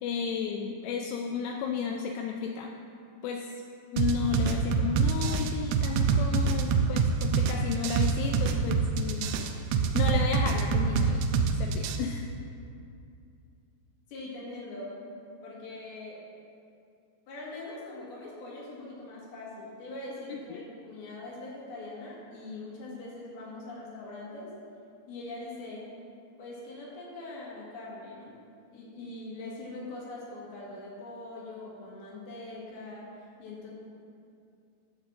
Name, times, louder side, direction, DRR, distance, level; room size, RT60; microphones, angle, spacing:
voice 1, 0.0-2.7 3.2-3.5 3.9-9.7 9.9-11.3 11.6-12.3 20.3-20.7, left 6 dB, 85° left, 3 dB, 2.4 m, -33 dB
sound 1, 4.0-12.0, right 5 dB, 85° right, 2.9 m, -25 dB
voice 2, 14.1-14.9 15.4-16.2 17.3-24.5 25.1-25.8 26.4-28.3 28.7-33.1 33.4-33.7, left 2 dB, 60° left, -5 dB, 3.4 m, -42 dB
12.0 x 4.0 x 7.3 m, 2.5 s
omnidirectional pair, 5.3 m